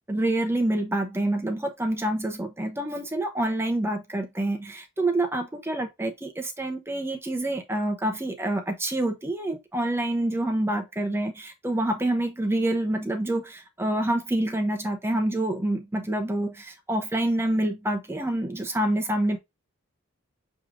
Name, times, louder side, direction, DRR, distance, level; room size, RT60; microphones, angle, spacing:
voice 1, 0.1-19.4, right 1 dB, 10° right, 0.6 m, -27 dB
6.3 x 3.2 x 2.5 m
head